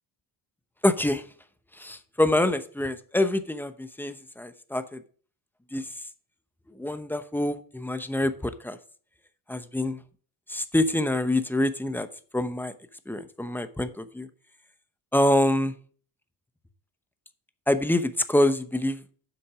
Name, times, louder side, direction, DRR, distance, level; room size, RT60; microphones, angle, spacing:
voice 1, 0.8-1.2 1.8-5.0 5.7-5.9 6.7-8.8 9.5-10.0 10.5-12.1 12.3-12.7 13.1-14.3 15.1-15.7 17.7-19.0, left 1 dB, 5° left, 10 dB, 0.8 m, -26 dB
8.0 x 6.0 x 5.0 m, 0.43 s
cardioid pair, 120°, 42 cm